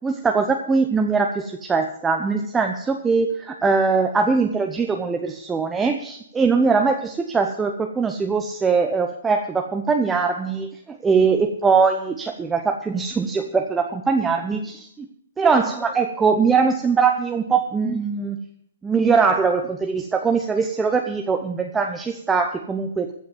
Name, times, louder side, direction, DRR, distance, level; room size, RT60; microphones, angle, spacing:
voice 1, 0.0-15.1 15.4-18.4 18.8-23.1, right 5 dB, 10° right, 4 dB, 0.8 m, -21 dB
15.0 x 5.7 x 9.2 m, 0.69 s
hypercardioid pair, 155°, 0 cm